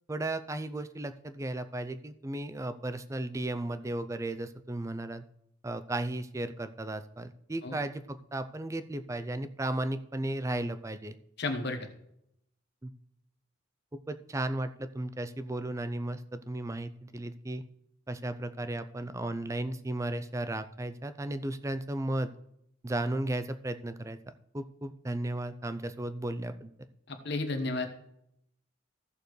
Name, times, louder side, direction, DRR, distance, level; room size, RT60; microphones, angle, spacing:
voice 1, 0.1-5.2 5.6-11.2 12.8-12.9 14.1-17.6 18.1-22.3 22.8-24.2 24.5-26.7, right 1 dB, 15° right, 11 dB, 0.4 m, -35 dB
voice 2, 11.4-11.8 27.1-27.9, left 2 dB, 55° left, 6 dB, 1.2 m, -32 dB
15.0 x 6.8 x 3.2 m, 0.76 s
head